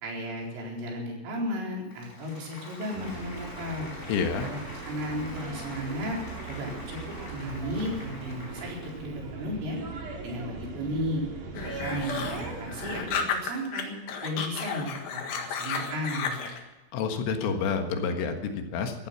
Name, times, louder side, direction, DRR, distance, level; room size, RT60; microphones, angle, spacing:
voice 1, 0.0-3.9 4.4-6.2 6.4-7.0 7.3-9.8 10.2-11.2 11.6-13.9 14.2-16.4, equal, 80° right, -2 dB, 6.7 m, -34 dB
Applause, 1.8-9.2, left 1 dB, 15° left, 4.5 m, -45 dB
sound 1, 2.9-13.3, right 4 dB, 45° right, 3.4 m, -39 dB
voice 2, 4.1-4.5 16.9-19.1, left 5 dB, 90° left, 5 dB, 4.2 m, -29 dB
sound 2, 11.5-13.8 14.1-16.6, left 6 dB, 60° left, 2.9 m, -33 dB
15.0 x 14.5 x 6.1 m, 1.1 s
omnidirectional pair, 5.6 m